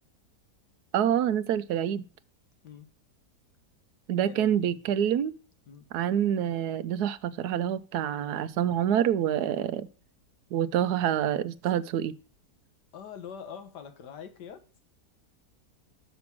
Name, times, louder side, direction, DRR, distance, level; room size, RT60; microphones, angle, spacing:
voice 1, 0.9-2.0 4.1-5.3 5.9-9.9 10.5-12.1, right 10 dB, 75° right, 1.1 m, -27 dB
voice 2, 4.2-4.9 5.7-5.9 12.9-14.6, left 7 dB, 85° left, 1.7 m, -44 dB
6.9 x 6.1 x 7.2 m
omnidirectional pair, 1.7 m